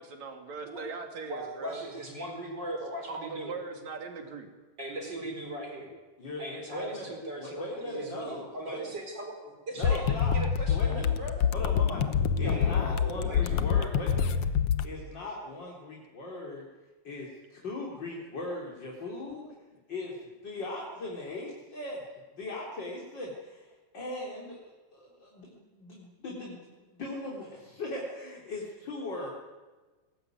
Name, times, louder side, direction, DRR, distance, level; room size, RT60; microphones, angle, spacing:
voice 1, 0.0-1.8 3.1-4.5 18.9-19.0, right 4 dB, 70° right, 4 dB, 3.8 m, -40 dB
voice 2, 1.2-3.6 4.8-5.9 6.4-11.5 12.3-14.1, right 1 dB, 35° right, 2 dB, 4.9 m, -39 dB
voice 3, 6.2-9.0 9.8-10.4 10.7-11.1 11.5-12.1 12.4-14.4 14.8-16.6 17.0-19.4 19.9-20.1 20.4-22.1 22.3-29.3, left 2 dB, 35° left, -3 dB, 4.3 m, -39 dB
sound 1, 9.8-14.9, left 7 dB, 60° left, 1.6 m, -26 dB
22.0 x 18.5 x 9.4 m, 1.3 s
omnidirectional pair, 3.3 m